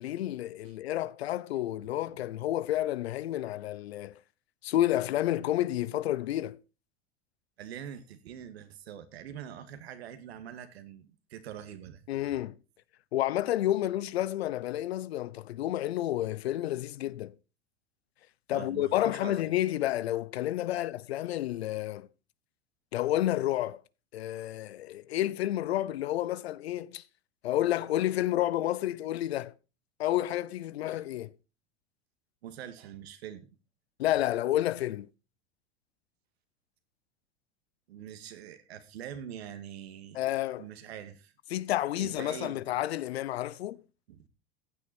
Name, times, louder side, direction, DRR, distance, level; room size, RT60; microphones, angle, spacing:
voice 1, 0.0-4.2 4.6-6.6 12.1-12.6 13.1-17.3 18.5-22.1 22.9-23.8 24.1-27.0 27.4-29.5 30.0-31.3 34.0-35.1 40.1-40.7 41.5-43.8, left 13 dB, 85° left, 0.8 m, -30 dB
voice 2, 7.6-12.1 18.5-19.4 20.7-20.8 32.4-33.5 37.9-40.2 40.6-41.3 42.0-42.6 44.2-44.3, right 9 dB, 80° right, 2.2 m, -44 dB
15.0 x 8.8 x 4.4 m
hypercardioid pair, 100°, 31 cm